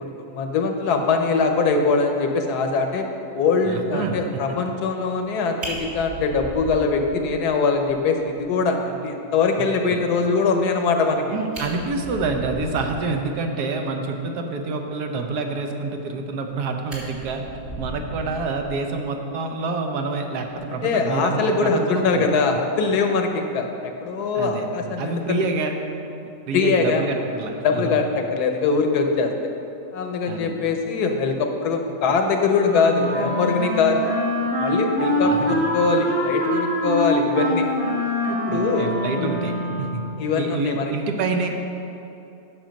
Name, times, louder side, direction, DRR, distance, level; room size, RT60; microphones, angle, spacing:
voice 1, 0.0-3.1 3.3-11.4 20.8-25.5 26.5-27.0 27.6-28.0 28.3-29.3 29.9-34.1 34.6-37.7 38.3-38.9 39.2-39.3 40.2-40.9, left 4 dB, 75° left, 4 dB, 1.2 m, -22 dB
voice 2, 3.7-4.2 9.6-10.0 11.3-17.4 17.8-22.3 24.3-24.7 25.0-25.7 26.5-27.9 30.3-30.5 35.2-35.6 38.5-40.0 40.3-41.5, right 3 dB, 75° right, 4 dB, 1.3 m, -27 dB
Fire, 5.3-5.4 5.6-7.5 7.9-8.0 8.4-8.5 8.8-8.9 11.1-11.2 11.4-13.2 16.0-16.5 16.9-19.1 20.4-20.6, right 1 dB, 50° right, 2.2 m, -37 dB
Wind instrument woodwind instrument, 32.6-40.1, left 1 dB, 35° right, 1.5 m, -24 dB
8.3 x 6.1 x 5.2 m, 2.8 s
omnidirectional pair, 1.7 m